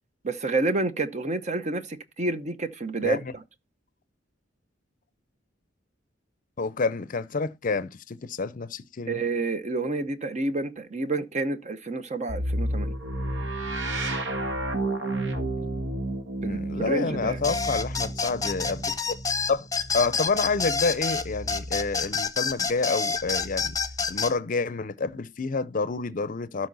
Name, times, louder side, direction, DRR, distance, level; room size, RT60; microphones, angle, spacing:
voice 1, 0.2-3.4 9.1-12.9 15.6-15.7 16.4-17.4, right 3 dB, 40° right, 0.8 m, -29 dB
voice 2, 6.6-9.2 16.4-19.2 19.5-19.7 19.9-23.8 24.1-26.7, left 4 dB, 45° left, 0.6 m, -28 dB
sound 1, 12.3-22.1 23.1-24.1, right 1 dB, 70° right, 1.5 m, -32 dB
sound 2, 17.4-24.3, left 5 dB, 20° left, 0.9 m, -28 dB
12.5 x 4.3 x 4.0 m
head